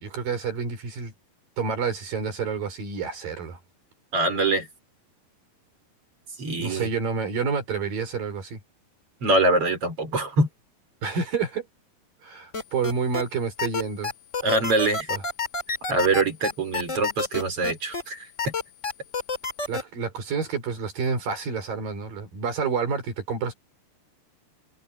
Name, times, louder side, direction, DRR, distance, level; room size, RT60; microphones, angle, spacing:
voice 1, 0.0-1.1 1.6-3.6 6.6-8.6 11.0-11.7 12.2-14.1 15.1-15.2 19.7-23.5, right 5 dB, 70° right, 6.3 m, -29 dB
voice 2, 4.1-4.7 6.4-6.9 9.2-10.5 14.4-15.1 15.9-18.5, right 2 dB, 40° right, 5.4 m, -24 dB
sound 1, 12.5-13.2 13.6-18.0 18.4-19.8, left 4 dB, 25° left, 2.5 m, -28 dB
omnidirectional pair, 4.2 m